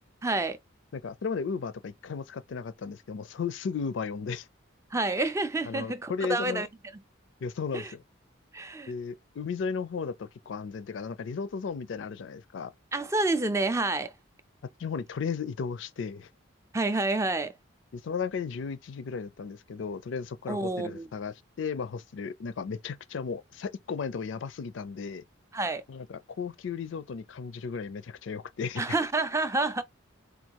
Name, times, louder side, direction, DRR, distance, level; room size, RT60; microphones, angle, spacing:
voice 1, 0.2-0.6 4.9-6.7 7.7-7.9 8.5-8.9 12.9-14.1 16.7-17.5 20.5-21.1 25.5-25.8 28.8-29.8, right 2 dB, 15° right, 0.4 m, -28 dB
voice 2, 0.9-4.5 5.7-6.7 7.4-8.0 8.9-12.7 14.8-16.3 17.9-25.2 25.9-29.0, left 5 dB, 65° left, 0.4 m, -35 dB
4.5 x 2.2 x 2.9 m
head